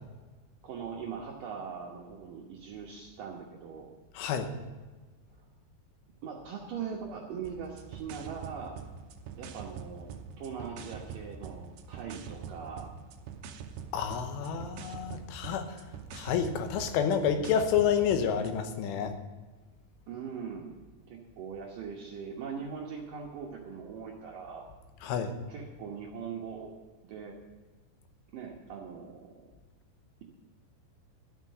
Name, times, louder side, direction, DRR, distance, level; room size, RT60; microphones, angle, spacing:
voice 1, 0.6-3.9 6.2-8.8 9.4-10.1 10.4-12.9 20.1-20.7 21.1-24.7 25.5-26.7 27.1-27.4 28.3-29.3, right 6 dB, 70° right, -2 dB, 2.0 m, -41 dB
voice 2, 4.1-4.5 13.9-15.8 16.1-19.1 25.0-25.3, left 7 dB, 85° left, 7 dB, 3.5 m, -29 dB
sound 1, 7.4-18.6, right 6 dB, 90° right, 2.1 m, -44 dB
12.5 x 6.0 x 9.3 m, 1.3 s
omnidirectional pair, 5.5 m